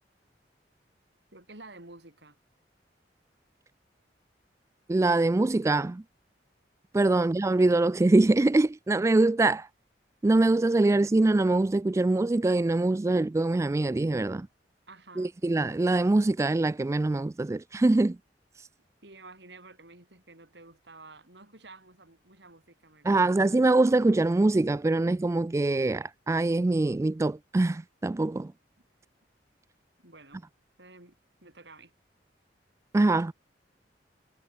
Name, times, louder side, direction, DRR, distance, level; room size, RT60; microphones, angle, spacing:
voice 1, 1.3-2.4 7.1-7.3 14.9-15.3 19.0-23.5 30.0-30.5 30.8-31.2 31.4-31.9, right 3 dB, 70° right, 5.4 m, -51 dB
voice 2, 4.9-6.0 6.9-9.7 10.2-14.5 15.2-18.2 23.0-28.5 32.9-33.3, right 2 dB, 15° right, 0.3 m, -24 dB
head